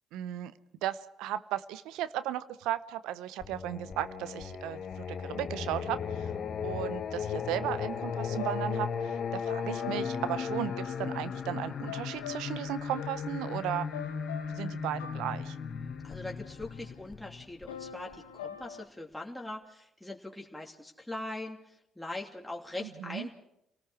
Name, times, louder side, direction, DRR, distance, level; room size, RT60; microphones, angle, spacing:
voice 1, 0.1-0.5 0.8-6.3 6.6-13.9 14.5-15.6 22.8-23.3, right 12 dB, 75° right, 15 dB, 0.6 m, -35 dB
Singing, 3.4-18.1, left 6 dB, 55° left, 1.2 m, -36 dB
sound 1, 8.1-16.9 17.7-18.9, left 9 dB, 90° left, 1.1 m, -46 dB
voice 2, 16.0-23.3, left 2 dB, 5° left, 0 dB, 2.7 m, -41 dB
28.5 x 18.5 x 4.8 m, 0.83 s
hypercardioid pair, 50°, 0 cm